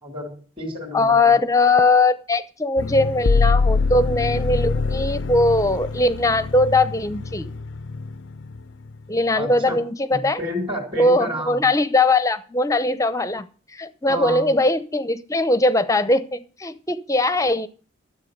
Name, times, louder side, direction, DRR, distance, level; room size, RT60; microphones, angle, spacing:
voice 1, 0.0-1.4 9.3-9.8 10.1-11.6 14.1-14.5, equal, 25° right, 0 dB, 3.1 m, -30 dB
voice 2, 0.9-7.4 9.1-10.4 10.9-13.4 13.7-17.7, left 2 dB, 15° left, 13 dB, 0.7 m, -20 dB
sound 1, 2.8-9.0, left 4 dB, 70° left, 0.5 m, -24 dB
13.0 x 7.6 x 6.6 m, 0.40 s
head